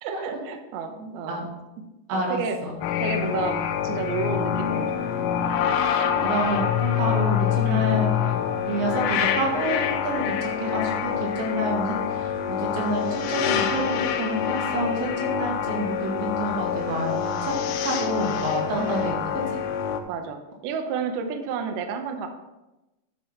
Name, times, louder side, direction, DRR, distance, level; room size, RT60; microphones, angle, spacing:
voice 1, 0.0-1.5 2.1-2.6 3.0-5.1 7.7-8.0 18.8-19.3 20.1-22.3, right 6 dB, 85° right, 5 dB, 2.2 m, -31 dB
voice 2, 2.1-2.7 6.2-8.4 8.6-17.5 17.8-19.2, right 1 dB, 70° right, -2 dB, 4.3 m, -28 dB
sound 1, 2.8-20.0, left 9 dB, 80° left, 3.2 m, -26 dB
11.0 x 6.1 x 4.4 m, 1.0 s
omnidirectional pair, 5.6 m